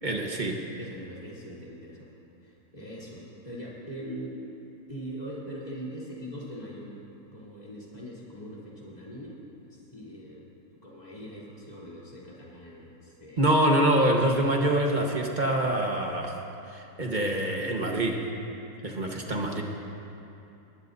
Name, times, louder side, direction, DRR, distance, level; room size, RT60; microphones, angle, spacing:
voice 1, 0.0-0.6 13.4-16.4 16.7-18.3 18.8-19.6, right 1 dB, 30° right, 1 dB, 1.4 m, -25 dB
voice 2, 0.8-2.1 2.4-4.4 4.9-6.9 7.3-9.4 9.7-10.4 10.8-13.4 19.0-19.3, equal, 25° left, -7 dB, 3.6 m, -41 dB
22.5 x 19.0 x 2.7 m, 2.8 s
omnidirectional pair, 1.6 m